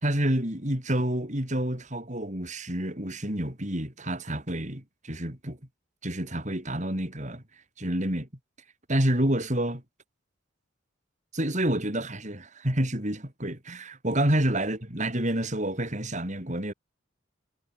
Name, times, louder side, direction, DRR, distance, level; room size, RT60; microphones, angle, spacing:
voice 1, 0.0-5.6 6.0-7.4 7.8-8.3 8.9-9.8 11.3-16.7, right 1 dB, 35° right, 5.2 m, -28 dB
head